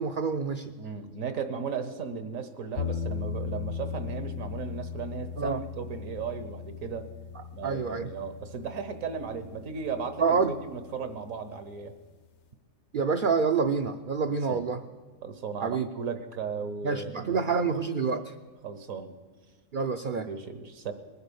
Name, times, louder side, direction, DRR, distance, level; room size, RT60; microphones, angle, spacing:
voice 1, 0.0-0.7 5.4-5.6 7.4-8.1 10.2-10.5 12.9-14.8 15.6-15.9 16.8-18.3 19.7-20.3, right 5 dB, 55° right, 5 dB, 0.6 m, -27 dB
voice 2, 0.8-7.1 7.5-10.2 10.6-11.9 14.5-14.7 15.2-17.7 18.6-19.1 20.3-20.9, right 6 dB, 75° right, 9 dB, 1.5 m, -36 dB
sound 1, 2.8-11.7, left 6 dB, 55° left, 1.1 m, -38 dB
20.5 x 9.5 x 7.0 m, 1.5 s
omnidirectional pair, 1.4 m